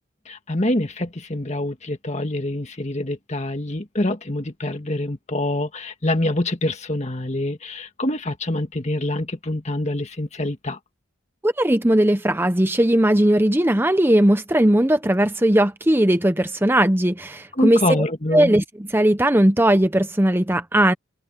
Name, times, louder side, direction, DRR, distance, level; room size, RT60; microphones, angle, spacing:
voice 1, 0.2-10.8 17.5-18.5, left 1 dB, 35° left, 1.7 m, -25 dB
voice 2, 11.4-17.8 18.3-20.9, right 1 dB, 10° right, 0.7 m, -18 dB
head